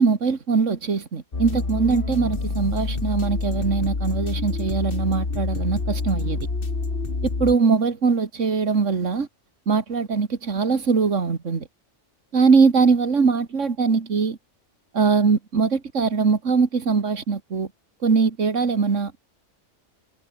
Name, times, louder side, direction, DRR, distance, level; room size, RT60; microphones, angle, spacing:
voice 1, 0.0-6.4 7.4-9.3 9.7-11.7 12.3-14.4 14.9-17.7 18.0-19.2, right 5 dB, 85° right, 2.3 m, -21 dB
sound 1, 1.3-7.6, left 3 dB, 50° left, 2.5 m, -27 dB
omnidirectional pair, 1.2 m